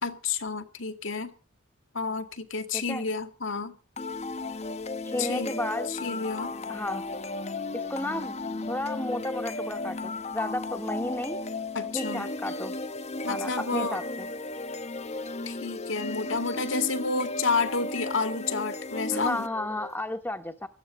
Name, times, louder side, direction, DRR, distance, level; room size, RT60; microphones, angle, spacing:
voice 1, 0.0-1.3 1.9-3.8 5.2-5.6 5.9-6.5 11.7-12.3 13.2-14.0 15.5-19.5, left 4 dB, 75° left, 2.1 m, -30 dB
sound 1, 4.0-20.0, left 2 dB, 35° left, 0.9 m, -35 dB
voice 2, 5.0-5.9 6.7-7.0 7.7-8.3 8.7-11.4 11.9-12.7 13.3-14.0 19.1-20.7, left 1 dB, 10° left, 1.1 m, -33 dB
17.5 x 14.0 x 5.2 m
head